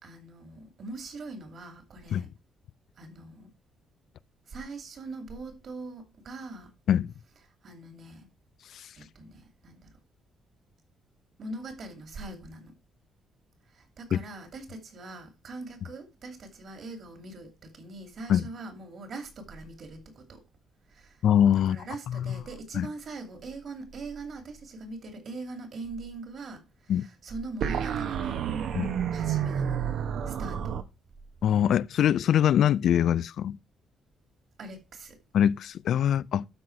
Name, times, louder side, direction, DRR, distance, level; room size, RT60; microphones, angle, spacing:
voice 1, 0.0-2.3 3.0-3.5 4.5-6.7 7.6-8.3 9.0-9.9 11.4-12.7 13.7-20.4 20.9-21.2 21.7-28.5 29.1-29.8 30.3-30.8 34.6-35.2, right 3 dB, 55° right, 2.6 m, -42 dB
voice 2, 21.2-21.8 22.1-22.2 22.7-22.9 26.9-27.1 28.7-28.9 31.4-33.6 35.3-36.5, left 10 dB, 70° left, 0.4 m, -23 dB
sound 1, 27.6-30.8, right 8 dB, 70° right, 1.0 m, -29 dB
12.0 x 4.1 x 4.6 m
cardioid pair, 90°, 0 cm